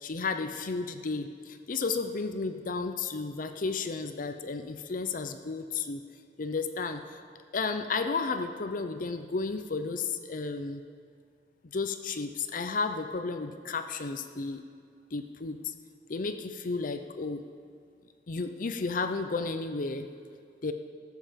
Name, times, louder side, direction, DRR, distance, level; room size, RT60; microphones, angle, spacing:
voice 1, 0.0-6.0 6.4-7.2 7.5-10.8 11.6-14.6 15.1-15.7 16.1-17.4 18.3-20.1 20.6-20.7, left 4 dB, 45° left, 8 dB, 0.6 m, -33 dB
18.5 x 7.6 x 5.2 m, 2.2 s
head